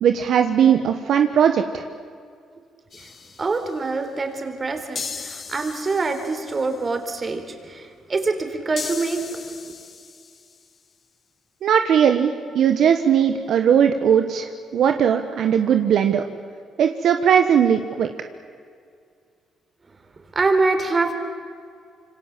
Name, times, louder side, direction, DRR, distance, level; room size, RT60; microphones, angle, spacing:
voice 1, 0.0-1.8 11.6-16.2 16.8-18.1, right 8 dB, 70° right, 6 dB, 1.3 m, -18 dB
sound 1, 2.9-3.8 5.0-6.9 8.8-10.7, left 5 dB, 45° left, 1.8 m, -37 dB
voice 2, 3.4-9.7 20.3-21.1, right 3 dB, 35° right, 6 dB, 4.0 m, -25 dB
26.5 x 24.5 x 7.4 m, 2.2 s
cardioid pair, 90°, 0 cm